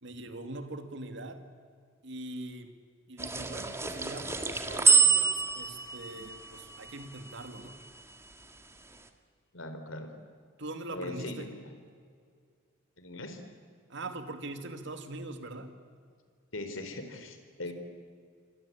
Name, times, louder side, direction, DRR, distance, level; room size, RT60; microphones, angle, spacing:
voice 1, 0.0-1.4 2.0-2.7 3.1-7.8 10.6-11.6 13.9-15.7, right 2 dB, 65° right, 8 dB, 2.5 m, -42 dB
sound 1, 3.2-7.7, right 5 dB, 15° right, 1.9 m, -27 dB
voice 2, 9.5-10.1 10.9-11.7 13.0-13.4 16.5-17.7, left 2 dB, 80° left, 7 dB, 4.1 m, -40 dB
28.0 x 24.5 x 8.7 m, 2.1 s
head